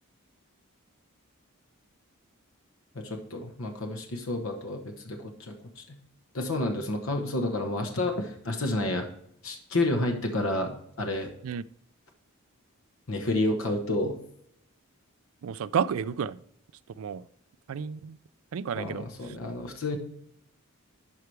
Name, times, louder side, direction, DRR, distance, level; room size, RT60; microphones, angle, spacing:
voice 1, 2.9-6.0 6.3-9.1 9.4-11.3 13.1-14.2 18.8-20.0, left 2 dB, 65° left, 1.0 m, -30 dB
voice 2, 15.4-16.4 17.0-17.2 17.7-18.2 18.5-19.4, right 7 dB, 70° right, 0.3 m, -31 dB
11.5 x 4.7 x 3.2 m
head